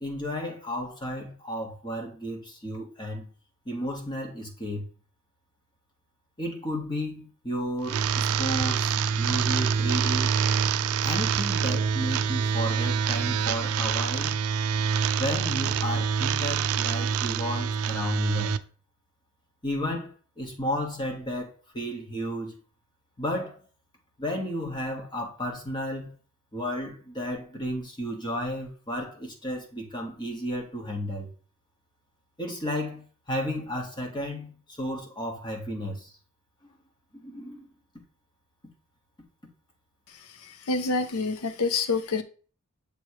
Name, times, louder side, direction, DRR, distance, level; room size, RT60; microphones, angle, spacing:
voice 1, 0.0-3.3 3.6-4.9 6.4-10.4 11.0-14.3 15.2-18.6 19.6-22.5 23.2-23.6 24.2-26.1 26.5-31.3 32.4-36.1 37.1-37.7, equal, 20° left, 1.3 m, -33 dB
sound 1, 7.8-18.6, right 6 dB, 75° right, 0.4 m, -26 dB
voice 2, 40.4-42.2, left 4 dB, 75° left, 0.6 m, -27 dB
7.0 x 3.0 x 4.6 m
head